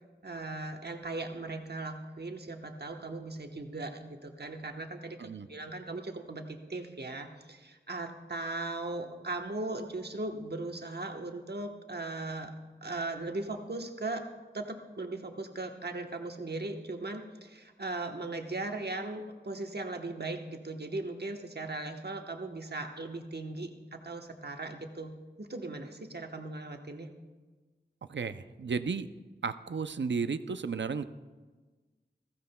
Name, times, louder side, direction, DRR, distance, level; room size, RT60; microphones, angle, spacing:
voice 1, 0.2-12.5 12.8-14.2 14.5-27.1, right 2 dB, 60° right, 4 dB, 1.1 m, -38 dB
voice 2, 28.1-29.1 29.4-31.0, right 5 dB, 80° right, 12 dB, 0.5 m, -33 dB
15.0 x 15.0 x 2.2 m, 1.3 s
wide cardioid pair, 55°, 19 cm